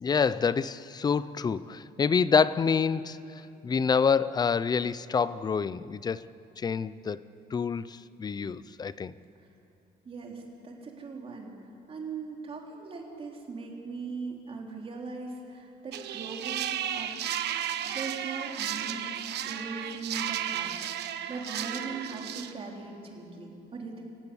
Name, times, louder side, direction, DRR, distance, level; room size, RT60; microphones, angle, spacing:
voice 1, 0.0-3.2 3.6-6.2 6.6-7.2 7.5-9.1, left 6 dB, 25° left, 0.5 m, -27 dB
voice 2, 10.1-11.5 11.9-17.1 17.8-24.0, right 4 dB, 35° right, 3.4 m, -40 dB
sound 1, 15.9-22.5, right 10 dB, 80° right, 1.2 m, -34 dB
26.5 x 15.5 x 9.9 m
cardioid pair, 175°, 17 cm